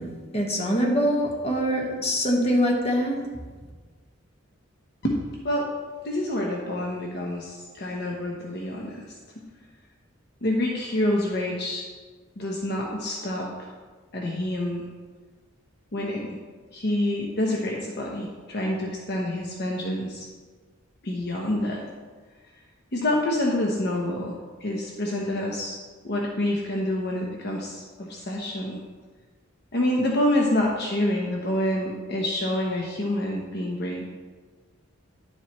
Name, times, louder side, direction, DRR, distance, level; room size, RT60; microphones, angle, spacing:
voice 1, 0.0-3.2, equal, 30° left, -1 dB, 1.5 m, -24 dB
voice 2, 6.0-9.2 10.4-11.8 12.4-13.7 14.1-14.8 15.9-16.4 16.7-20.3 21.0-21.9 22.9-25.8 26.0-28.8 29.7-34.1, left 1 dB, 55° left, -1 dB, 1.0 m, -27 dB
10.5 x 7.4 x 3.1 m, 1.4 s
head